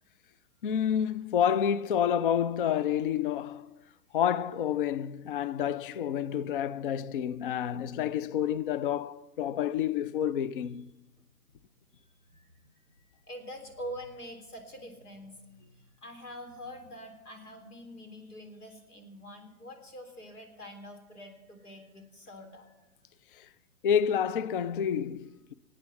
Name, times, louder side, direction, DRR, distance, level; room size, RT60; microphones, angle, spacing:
voice 1, 0.6-3.8 4.1-10.9 23.3-23.5 23.8-25.5, left 9 dB, 40° left, 0.4 m, -29 dB
voice 2, 11.9-22.8, equal, 80° left, 3.7 m, -45 dB
23.5 x 8.8 x 5.9 m
hypercardioid pair, 130°, 44 cm